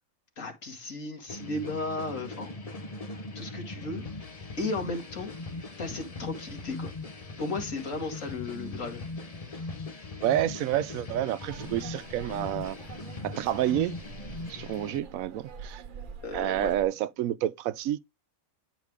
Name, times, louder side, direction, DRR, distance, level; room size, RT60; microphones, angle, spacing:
voice 1, 0.4-2.5 3.3-4.0 4.6-5.3 5.8-6.9 7.4-9.1 16.2-16.7, left 3 dB, 75° left, 2.5 m, -35 dB
sound 1, 1.3-15.0, left 2 dB, 30° left, 1.1 m, -40 dB
voice 2, 10.2-12.8 13.2-14.0 14.5-15.8 16.3-18.0, right 12 dB, 90° right, 1.0 m, -29 dB
sound 2, 11.5-16.9, right 5 dB, 45° right, 0.9 m, -46 dB
9.6 x 4.8 x 3.5 m
omnidirectional pair, 1.4 m